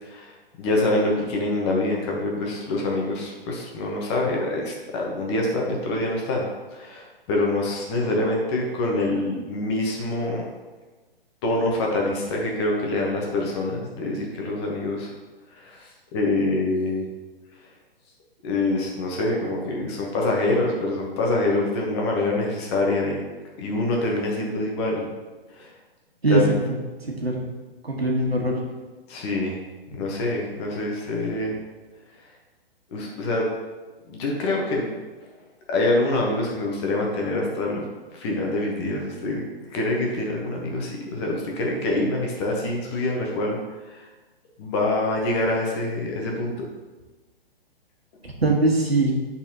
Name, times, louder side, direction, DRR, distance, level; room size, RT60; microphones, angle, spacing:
voice 1, 0.0-10.4 11.4-15.1 15.5-17.1 18.4-23.2 23.6-25.1 25.5-25.7 26.3-26.4 29.1-29.6 29.9-31.6 32.9-33.5 34.1-34.9 35.7-37.9 38.1-43.6 43.8-44.1 44.6-46.7, left 2 dB, 25° left, -1 dB, 1.1 m, -25 dB
voice 2, 27.0-27.4 27.8-28.6 48.2-49.1, right 3 dB, 80° right, -1 dB, 1.5 m, -22 dB
10.0 x 4.2 x 2.9 m, 1.2 s
figure-of-eight pair, 125°, 30 cm